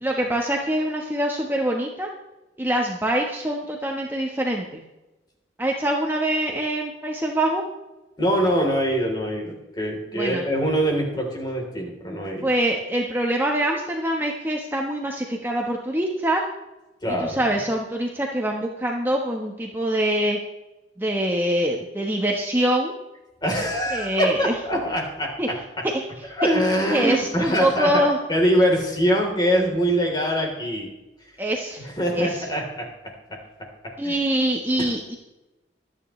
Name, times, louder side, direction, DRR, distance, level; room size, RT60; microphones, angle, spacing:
voice 1, 0.0-2.1 2.6-4.8 5.6-7.6 10.1-10.4 12.4-16.5 17.2-20.4 21.0-22.9 23.9-24.5 25.4-25.5 26.9-28.2 31.4-31.9 32.1-32.3 34.0-35.2, right 1 dB, 10° right, 0 dB, 1.2 m, -24 dB
voice 2, 8.2-12.5 17.0-17.6 23.4-25.6 26.3-28.0 28.3-30.9 32.0-32.9 33.3-33.4 34.0-34.2 34.8-34.9, equal, 25° left, 0 dB, 3.6 m, -23 dB
24.5 x 9.7 x 3.2 m, 1.0 s
head